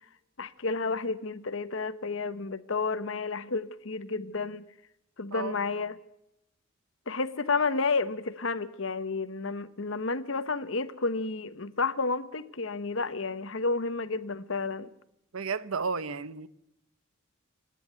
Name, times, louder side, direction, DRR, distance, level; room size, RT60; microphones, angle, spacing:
voice 1, 0.4-4.6 5.2-6.0 7.1-14.9, left 4 dB, 65° left, 1.1 m, -31 dB
voice 2, 15.3-16.5, right 5 dB, 80° right, 0.9 m, -32 dB
27.0 x 10.5 x 9.3 m
head